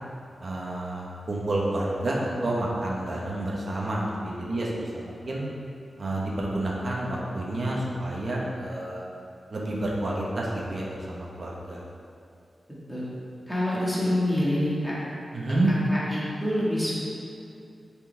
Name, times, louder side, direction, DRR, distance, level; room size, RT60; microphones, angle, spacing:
voice 1, 0.4-5.4 6.0-9.0 9.5-11.8 15.3-15.7, right 1 dB, 45° right, -4 dB, 1.3 m, -29 dB
voice 2, 13.5-14.9 15.7-17.0, left 1 dB, 5° left, -9 dB, 1.9 m, -26 dB
10.0 x 5.2 x 3.5 m, 2.5 s
wide cardioid pair, 175°, 0 cm